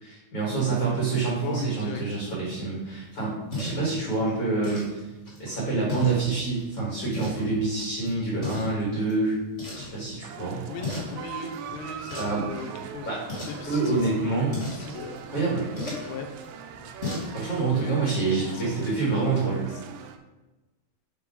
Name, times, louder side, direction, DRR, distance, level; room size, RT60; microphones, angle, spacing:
voice 1, 0.0-5.1 5.4-9.4 9.7-10.6 12.2-12.5 13.0-14.5 15.3-15.7 17.3-19.6, right 3 dB, 45° left, -5 dB, 2.1 m, -27 dB
voice 2, 1.4-2.0 10.7-13.1 13.5-15.3 16.1-16.3 17.7-19.8, left 4 dB, 85° left, 3 dB, 2.8 m, -38 dB
sound 1, 2.4-17.7, left 2 dB, 25° left, 0.8 m, -39 dB
sound 2, 10.2-20.2, right 8 dB, 80° right, 2.5 m, -42 dB
7.7 x 3.6 x 5.0 m, 1.1 s
omnidirectional pair, 4.8 m